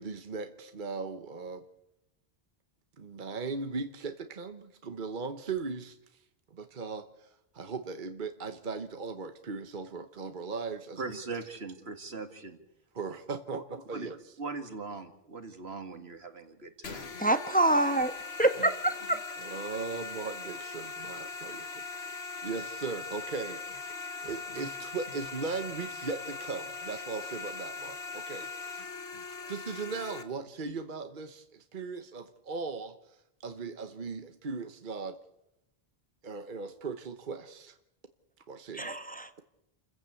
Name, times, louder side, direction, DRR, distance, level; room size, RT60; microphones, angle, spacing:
voice 1, 0.0-1.6 3.0-6.2 6.5-11.2 12.9-14.3 19.4-23.6 23.9-35.2 36.2-37.8 38.5-38.9, right 4 dB, 50° right, 8 dB, 1.2 m, -38 dB
voice 2, 11.0-12.6 13.5-13.6 13.9-14.1 14.4-17.1, right 3 dB, 80° right, 7 dB, 2.4 m, -40 dB
sound 1, 16.8-30.2, left 4 dB, 80° left, 1.9 m, -40 dB
voice 3, 17.2-18.1 18.4-19.2 38.7-39.4, right 2 dB, 10° left, 9 dB, 1.1 m, -26 dB
29.0 x 15.0 x 8.3 m, 0.89 s
omnidirectional pair, 1.0 m